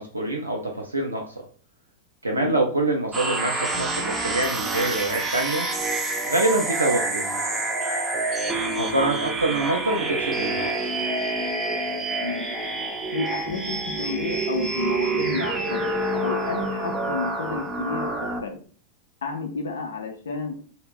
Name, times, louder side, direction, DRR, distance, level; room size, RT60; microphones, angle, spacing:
voice 1, 0.0-1.3 2.2-5.7 6.3-7.4 8.8-11.0, right 2 dB, 80° right, 1 dB, 0.4 m, -25 dB
sound 1, 3.1-18.4, right 2 dB, 15° right, 0.4 m, -27 dB
voice 2, 12.2-12.5 13.1-15.9 16.2-18.6 19.2-20.6, left 4 dB, 65° left, 3 dB, 0.4 m, -31 dB
2.3 x 2.0 x 3.3 m, 0.42 s
figure-of-eight pair, 90°, 0 cm